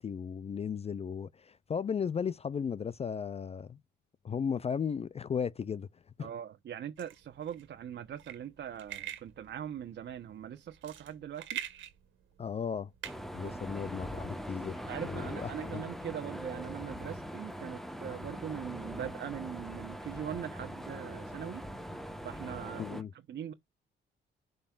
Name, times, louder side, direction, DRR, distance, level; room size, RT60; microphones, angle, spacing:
voice 1, 0.0-3.8 4.2-5.9 6.2-6.3 12.4-12.9 13.3-14.8 15.0-15.8 22.8-23.1, left 7 dB, 30° left, 0.4 m, -35 dB
voice 2, 6.2-11.6 13.4-13.6 14.9-21.7 22.2-23.5, right 9 dB, 60° right, 1.0 m, -41 dB
sound 1, 7.0-14.2, right 11 dB, 75° right, 1.8 m, -45 dB
sound 2, 13.0-23.0, equal, ahead, 1.3 m, -42 dB
11.5 x 5.5 x 2.4 m
cardioid pair, 90°, 20 cm